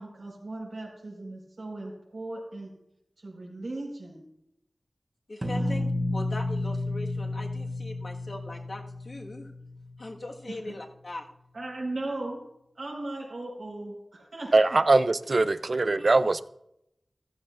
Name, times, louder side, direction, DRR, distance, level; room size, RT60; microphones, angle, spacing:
voice 1, 0.0-2.7 3.2-4.2 5.4-6.2 10.4-10.7 11.5-12.5 12.7-14.8, right 2 dB, 85° right, 4.9 m, -38 dB
voice 2, 5.3-5.9 6.1-9.5 10.0-11.2, left 2 dB, 60° left, 1.6 m, -40 dB
sound 1, 5.4-10.3, left 2 dB, 30° right, 1.2 m, -32 dB
voice 3, 14.5-16.4, right 3 dB, 60° right, 0.5 m, -22 dB
14.5 x 14.0 x 2.5 m
wide cardioid pair, 75°, 0 cm